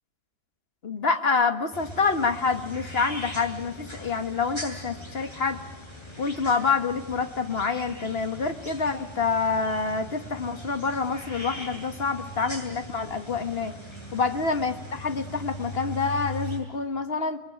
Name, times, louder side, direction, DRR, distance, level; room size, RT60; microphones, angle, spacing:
voice 1, 0.8-5.6 6.2-13.8 14.1-17.4, left 4 dB, 35° left, 7 dB, 1.7 m, -27 dB
african aviary, 1.7-16.6, equal, 15° left, 7.9 m, -40 dB
28.5 x 21.5 x 8.9 m, 1.1 s
omnidirectional pair, 1.9 m